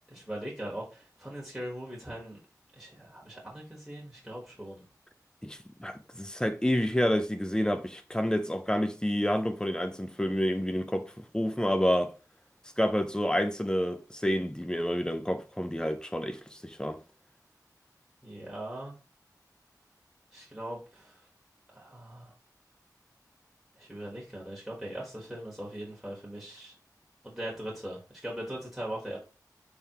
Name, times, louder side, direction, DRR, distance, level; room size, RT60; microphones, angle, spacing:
voice 1, 0.1-2.4 2.8-4.8 18.2-18.9 20.3-21.2 21.7-22.3 23.8-26.7 27.2-29.2, right 1 dB, 5° right, 1.2 m, -40 dB
voice 2, 5.4-12.1 12.8-17.0, equal, 10° left, 0.5 m, -29 dB
3.5 x 3.5 x 2.9 m
wide cardioid pair, 60°, 7 cm